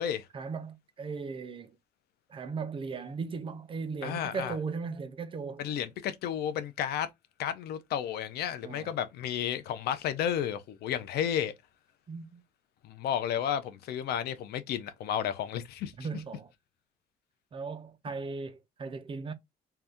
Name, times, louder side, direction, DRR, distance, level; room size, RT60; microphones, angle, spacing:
voice 1, 0.3-1.7 2.3-5.6 8.6-9.0 12.1-12.4 16.0-16.5 17.5-19.3, right 4 dB, 30° right, 0.5 m, -37 dB
voice 2, 4.0-4.5 5.6-7.1 7.4-11.5 12.8-15.9, left 9 dB, 70° left, 0.6 m, -32 dB
2.7 x 2.3 x 3.3 m
cardioid pair, 110°, 17 cm